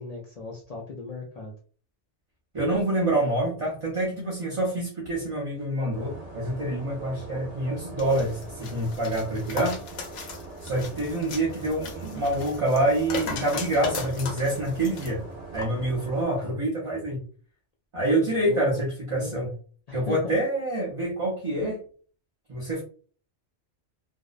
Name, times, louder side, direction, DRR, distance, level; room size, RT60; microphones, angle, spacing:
voice 1, 0.0-1.5 18.0-18.8 19.1-19.3 19.9-20.3, left 3 dB, 65° left, -2 dB, 0.4 m, -37 dB
voice 2, 2.5-9.8 10.6-15.2 15.5-17.2 17.9-19.5 19.9-21.8 22.5-22.8, right 1 dB, 35° right, -4 dB, 0.6 m, -26 dB
sound 1, 5.9-16.2, right 2 dB, 75° right, 1.0 m, -42 dB
sound 2, 8.0-15.1 15.6-15.7, left 4 dB, 80° left, 1.0 m, -37 dB
2.6 x 2.0 x 2.4 m, 0.42 s
omnidirectional pair, 1.2 m